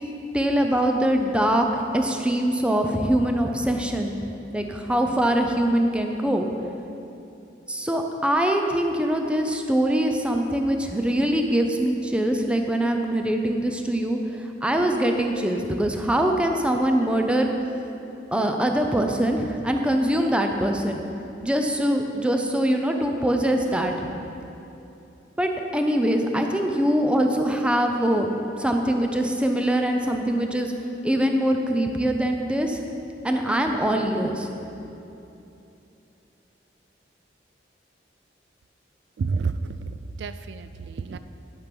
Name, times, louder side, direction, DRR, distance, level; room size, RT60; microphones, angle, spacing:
voice 1, 0.3-4.2 4.5-6.5 7.7-17.5 18.3-21.0 21.4-23.9 25.4-28.3 28.6-30.7 31.0-32.8 33.2-34.5, right 1 dB, 5° right, 3 dB, 0.6 m, -23 dB
voice 2, 39.2-41.2, right 4 dB, 70° right, 11 dB, 0.3 m, -30 dB
11.5 x 6.0 x 5.3 m, 2.8 s
head